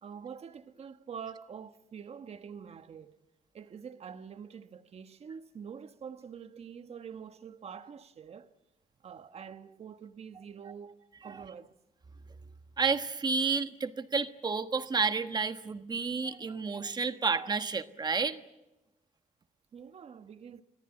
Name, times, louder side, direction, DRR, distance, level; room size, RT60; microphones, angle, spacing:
voice 1, 0.0-3.2 3.5-8.5 9.0-11.7 19.7-20.6, right 7 dB, 50° right, 1.2 m, -46 dB
voice 2, 12.8-18.4, right 4 dB, 30° right, 1.3 m, -31 dB
25.5 x 18.5 x 9.7 m
wide cardioid pair, 145°, 14 cm